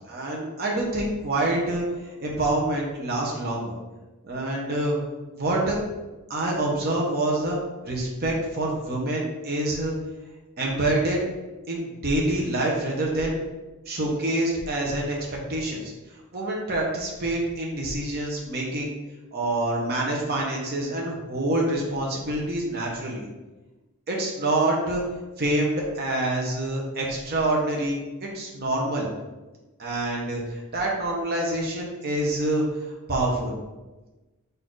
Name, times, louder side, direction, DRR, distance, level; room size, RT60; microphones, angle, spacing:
voice 1, 0.1-3.8 4.2-5.0 5.3-5.8 6.3-7.6 7.8-9.9 10.6-11.2 11.7-13.4 13.9-15.9 16.3-18.9 19.3-23.3 24.1-25.0 25.4-29.1 29.8-32.8 33.1-33.6, right 1 dB, 45° right, -2 dB, 0.8 m, -26 dB
4.3 x 2.6 x 4.5 m, 1.1 s
head